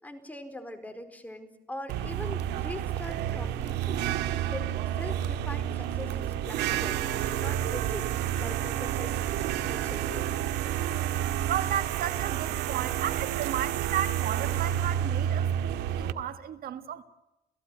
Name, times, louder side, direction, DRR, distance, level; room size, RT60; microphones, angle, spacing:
voice 1, 0.0-4.1 4.5-9.3 9.7-10.6, left 1 dB, 10° left, 4.3 m, -42 dB
sound 1, 1.9-16.1, right 11 dB, 85° right, 1.9 m, -30 dB
voice 2, 11.4-17.0, right 10 dB, 60° right, 1.7 m, -33 dB
30.0 x 17.0 x 9.4 m
cardioid pair, 110°, 17 cm